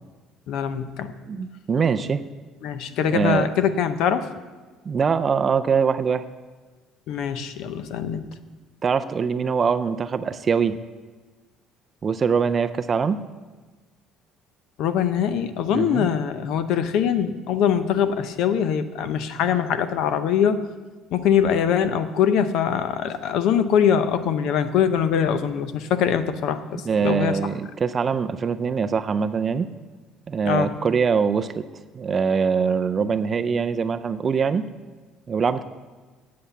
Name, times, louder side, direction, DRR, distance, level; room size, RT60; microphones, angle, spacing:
voice 1, 0.5-1.1 2.6-4.3 7.1-8.2 14.8-20.7 21.1-27.4 30.4-30.7, left 8 dB, 65° left, 11 dB, 0.7 m, -23 dB
voice 2, 1.3-2.2 3.0-3.5 4.9-6.2 8.8-10.8 12.0-13.2 15.7-16.1 26.9-29.7 30.3-31.7 31.9-34.6 35.3-35.6, right 6 dB, 25° right, 11 dB, 0.4 m, -23 dB
8.4 x 7.9 x 8.1 m, 1.4 s
cardioid pair, 165°, 0 cm